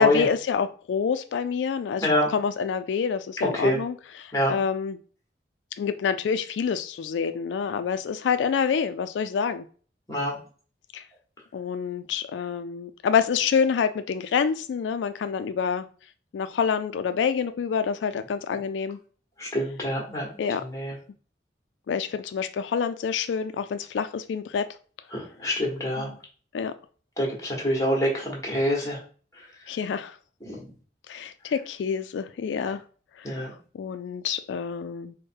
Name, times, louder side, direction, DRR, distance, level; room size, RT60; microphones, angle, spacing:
voice 1, 0.0-5.0 5.8-9.6 10.9-11.0 11.5-15.9 16.3-19.0 20.4-20.7 21.9-24.7 26.0-26.2 26.5-26.7 29.7-30.2 31.1-32.8 33.2-33.5 33.7-35.2, left 6 dB, 90° left, 10 dB, 0.3 m, -27 dB
voice 2, 3.4-3.8 4.3-4.6 10.1-10.3 19.4-20.3 20.7-20.9 25.1-26.1 27.2-29.0 30.4-30.6 33.2-33.5, left 1 dB, 20° left, -1 dB, 1.3 m, -25 dB
4.7 x 2.1 x 4.4 m, 0.41 s
head